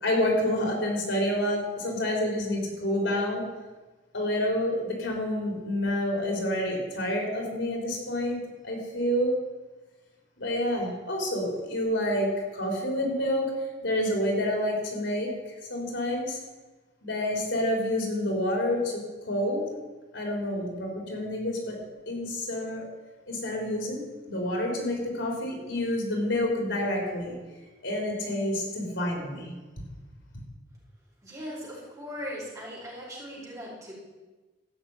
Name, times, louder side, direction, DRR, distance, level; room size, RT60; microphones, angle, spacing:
voice 1, 0.0-3.4 4.1-8.4 8.6-9.3 10.4-13.5 13.8-16.4 17.0-19.6 20.1-21.8 22.1-22.9 23.3-24.0 24.3-27.4 27.8-29.5, left 1 dB, 80° left, 0 dB, 3.7 m, -28 dB
voice 2, 31.2-33.9, equal, 20° right, -5 dB, 4.8 m, -39 dB
14.0 x 6.1 x 8.8 m, 1.2 s
head